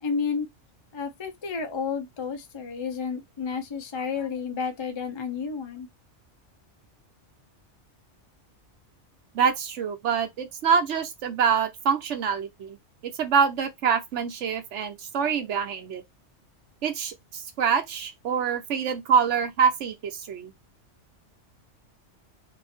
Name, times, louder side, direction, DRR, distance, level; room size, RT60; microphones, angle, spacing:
voice 1, 0.0-0.5 0.9-5.9, left 5 dB, 30° left, 0.5 m, -31 dB
voice 2, 9.3-12.8 13.0-16.0 16.8-20.5, right 6 dB, 70° right, 1.1 m, -25 dB
2.8 x 2.7 x 4.2 m
omnidirectional pair, 1.3 m